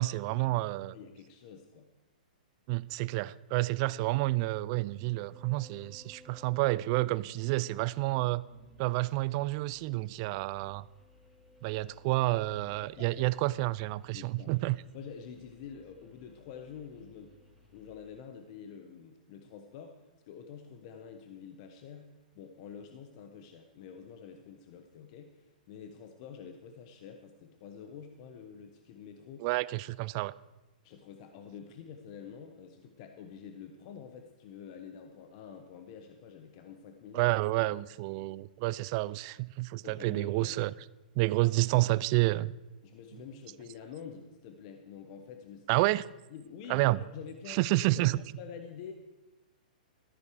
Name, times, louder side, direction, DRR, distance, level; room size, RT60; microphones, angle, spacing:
voice 1, 0.0-0.9 2.7-8.4 8.8-10.8 11.6-14.8 29.4-30.3 37.1-40.7 41.2-42.5 45.7-46.0 46.7-47.0 47.5-48.2, right 20 dB, 40° right, 0.4 m, -29 dB
voice 2, 0.8-1.9 12.8-13.3 14.1-14.6 14.9-17.3 17.7-20.0 20.3-22.1 22.3-29.5 30.8-37.3 39.8-40.6 42.8-45.8 46.3-48.9, left 7 dB, 45° left, 1.0 m, -47 dB
sound 1, 4.8-17.9, left 1 dB, 5° left, 3.4 m, -60 dB
13.5 x 9.7 x 4.9 m
hypercardioid pair, 130°, 5 cm